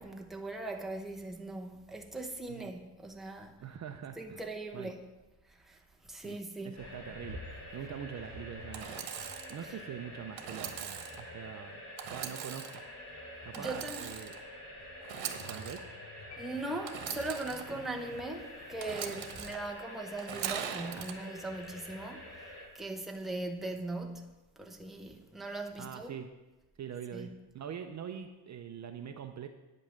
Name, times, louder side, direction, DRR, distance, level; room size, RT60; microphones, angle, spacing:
voice 1, 0.0-3.6 4.2-5.0 5.5-6.8 9.6-9.7 13.5-14.1 16.4-22.5 22.7-26.2 27.1-27.4, right 2 dB, ahead, 0.7 m, -40 dB
voice 2, 3.6-4.4 4.7-4.9 6.2-6.4 6.6-7.4 7.7-9.0 9.5-11.8 12.1-12.8 13.4-14.3 15.5-15.8 25.8-26.3 26.8-27.3 27.5-29.5, right 8 dB, 40° right, 0.5 m, -43 dB
sound 1, 6.8-22.7, left 1 dB, 35° left, 3.5 m, -47 dB
Engine / Sawing, 8.7-9.6 10.4-11.2 12.0-12.8 13.5-14.4 15.0-15.8 16.9-17.6 18.8-19.6 20.2-21.1, right 9 dB, 75° right, 1.2 m, -40 dB
sound 2, 16.3-17.5, left 2 dB, 70° left, 2.1 m, -55 dB
9.3 x 5.3 x 7.2 m
cardioid pair, 145°, 46 cm